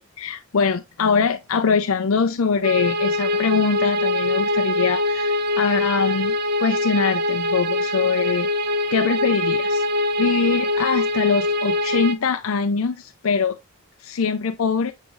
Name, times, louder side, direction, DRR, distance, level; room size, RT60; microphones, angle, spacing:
voice 1, 0.0-8.5 8.9-9.8 10.2-13.6 14.0-14.9, left 5 dB, 85° left, 0.5 m, -23 dB
sound 1, 2.6-12.1, left 1 dB, 50° right, 0.7 m, -23 dB
7.2 x 5.5 x 2.4 m
head